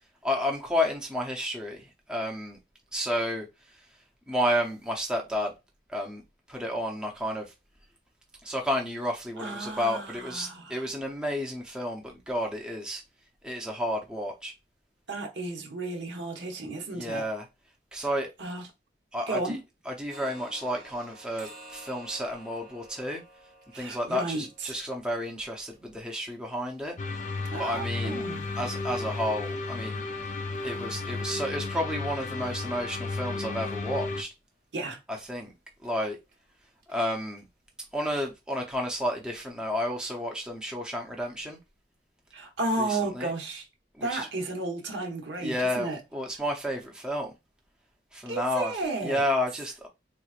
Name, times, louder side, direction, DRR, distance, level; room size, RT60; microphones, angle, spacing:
voice 1, 0.2-2.6 2.9-3.5 4.3-5.5 5.9-6.2 6.5-7.5 8.4-13.0 13.4-14.5 16.9-17.5 17.9-18.3 19.1-19.6 19.9-23.2 23.7-27.0 27.6-28.2 28.6-30.0 30.6-34.3 35.1-35.5 35.8-36.2 36.9-37.4 37.9-41.6 42.8-43.3 44.0-44.3 45.4-47.3 48.1-49.9, equal, 5° right, 0.6 m, -31 dB
voice 2, 9.4-10.8 15.1-17.2 18.4-18.6 19.3-19.6 23.7-24.7 27.5-28.5 34.7-35.0 42.3-43.6 44.0-46.0 48.3-49.2, right 2 dB, 75° right, 1.0 m, -33 dB
sound 1, 20.1-27.9 28.4-28.5 28.9-29.0 29.5-29.6 30.0-30.1 30.5-30.6 31.0-31.1 31.6-31.7 32.1-32.2 32.7-32.8 33.1-33.2 33.7-33.8 34.2-34.3 34.8-34.9 35.3-35.4 35.8-35.9 36.3-36.4 36.8-36.9 37.4-37.5 38.0-38.1, right 1 dB, 50° right, 1.0 m, -52 dB
sound 2, 27.0-34.2, left 3 dB, 40° left, 0.5 m, -33 dB
3.8 x 2.9 x 2.4 m
head